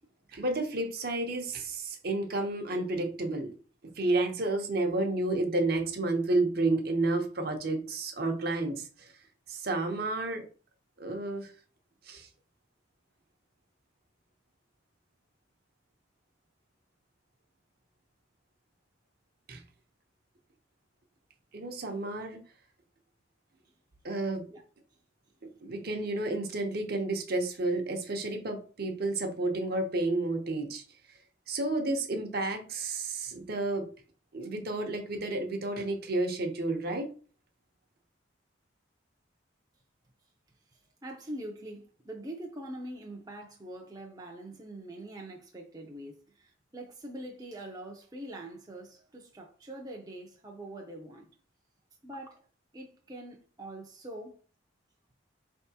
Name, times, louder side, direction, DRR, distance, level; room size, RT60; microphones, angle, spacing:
voice 1, 0.3-3.5 4.0-9.1 9.5-10.4 11.0-11.5 12.0-12.3 19.5-19.6 21.5-22.4 24.0-24.5 25.6-30.8 31.5-33.9 34.3-37.1, right 2 dB, 50° right, 0.8 m, -31 dB
voice 2, 40.7-51.3 52.0-52.5 52.7-54.4, right 1 dB, 20° right, 0.5 m, -44 dB
4.6 x 3.4 x 2.8 m
head